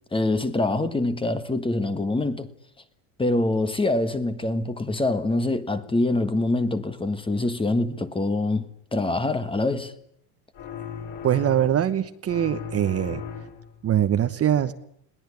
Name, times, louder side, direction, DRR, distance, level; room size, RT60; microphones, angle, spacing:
voice 1, 0.1-2.5 3.2-9.9, left 2 dB, 10° left, 1.4 m, -25 dB
sound 1, 10.5-12.0 12.3-13.8, left 8 dB, 65° left, 7.2 m, -37 dB
voice 2, 11.2-13.2 13.8-14.7, right 10 dB, 30° right, 1.1 m, -22 dB
21.0 x 18.0 x 9.7 m
supercardioid pair, 125°, 48 cm